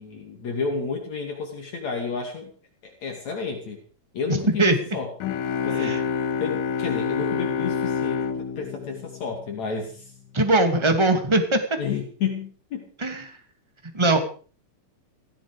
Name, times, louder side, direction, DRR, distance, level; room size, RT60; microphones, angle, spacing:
voice 1, 0.0-2.5 2.8-3.8 4.1-5.1 5.6-6.0 6.4-10.1 11.8-12.9, left 5 dB, 55° left, 2 dB, 3.8 m, -31 dB
sound 1, 5.2-9.9, left 7 dB, 80° left, 2.9 m, -27 dB
voice 2, 10.3-11.6 13.0-13.2 13.9-14.2, right 2 dB, 10° right, 6 dB, 2.1 m, -20 dB
17.5 x 16.0 x 5.1 m, 0.40 s
omnidirectional pair, 3.9 m